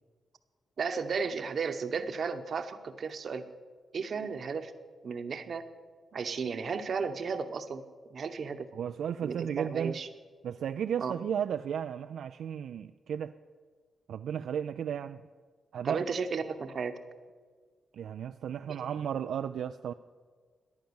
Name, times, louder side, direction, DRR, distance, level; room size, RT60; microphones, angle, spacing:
voice 1, 0.8-3.4 3.9-4.7 5.0-5.6 6.1-7.8 8.1-8.7 9.2-10.1 11.0-11.1 15.8-17.0 18.7-18.9, right 5 dB, 55° right, 9 dB, 1.0 m, -34 dB
voice 2, 8.7-10.0 10.4-13.3 14.1-15.2 15.7-16.1 17.9-19.9, right 8 dB, 85° right, 9 dB, 0.3 m, -34 dB
14.5 x 10.5 x 7.1 m, 1.5 s
cardioid pair, 105°, 0 cm